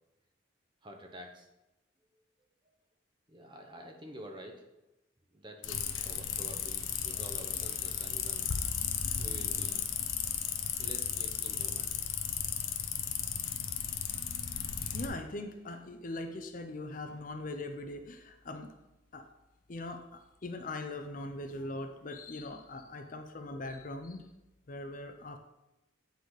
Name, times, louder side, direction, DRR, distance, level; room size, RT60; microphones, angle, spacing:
voice 1, 0.8-1.5 2.6-2.7 3.3-4.7 5.3-8.5 9.2-9.9 10.8-12.0, right 1 dB, 25° right, 3 dB, 0.9 m, -49 dB
sound 1, 5.6-15.1, left 8 dB, 85° left, 0.7 m, -34 dB
voice 2, 14.9-18.7 19.1-19.3 19.7-24.2 24.7-25.4, left 2 dB, 40° left, 6 dB, 0.5 m, -41 dB
8.2 x 4.0 x 4.8 m, 0.96 s
head